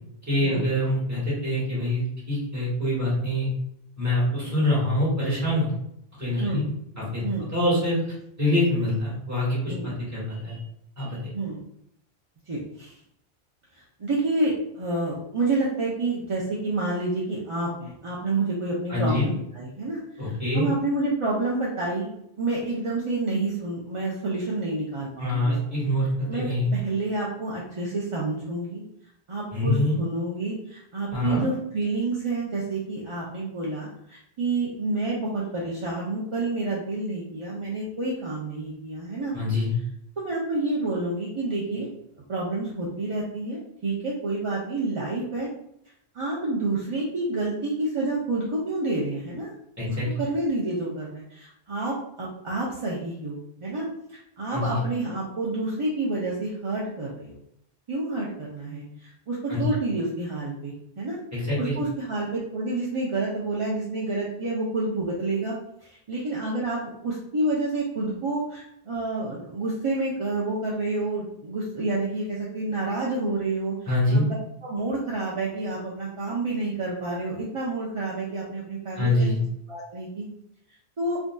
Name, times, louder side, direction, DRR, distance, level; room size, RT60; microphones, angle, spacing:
voice 1, 0.3-3.5 4.0-5.7 6.2-6.7 7.0-7.2 7.5-8.0 8.4-10.6 11.0-11.3 18.9-19.3 20.2-20.7 25.2-26.7 29.5-30.0 31.1-31.4 39.3-39.7 49.8-50.1 54.5-54.8 59.5-59.6 61.3-61.7 73.9-74.2 79.0-79.4, left 1 dB, 15° right, -8 dB, 1.4 m, -25 dB
voice 2, 12.5-13.0 14.0-22.1 22.4-25.8 26.3-28.8 29.3-39.3 40.2-41.9 42.3-45.5 46.1-49.5 49.9-57.4 57.9-61.2 61.6-65.5 65.8-73.8 74.1-74.2 74.6-79.3 79.7-80.2 81.0-81.2, right 2 dB, 40° right, -5 dB, 0.4 m, -29 dB
3.5 x 2.6 x 2.2 m, 0.75 s
omnidirectional pair, 1.1 m